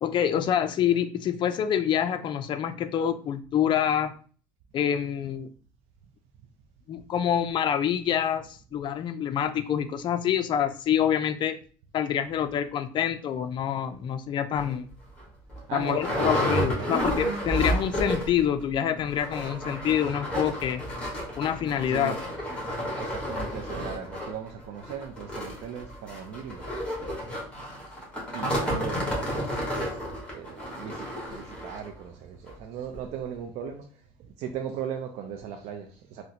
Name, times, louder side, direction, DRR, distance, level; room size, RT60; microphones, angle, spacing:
voice 1, 0.0-4.1 4.7-5.5 6.9-11.6 11.9-14.9 15.7-20.8 21.4-22.1 28.9-29.1, left 9 dB, 40° left, 0.4 m, -26 dB
sound 1, 14.6-14.7 15.2-15.3 15.5-18.4 18.7-18.8 19.1-31.9 32.5-32.6 32.9-33.0, equal, 10° left, 1.3 m, -31 dB
voice 2, 15.7-17.0 21.8-22.2 23.0-26.7 28.3-30.0 30.3-33.9 34.2-36.2, right 8 dB, 60° right, 0.4 m, -38 dB
3.9 x 2.1 x 2.8 m
cardioid pair, 115°, 13 cm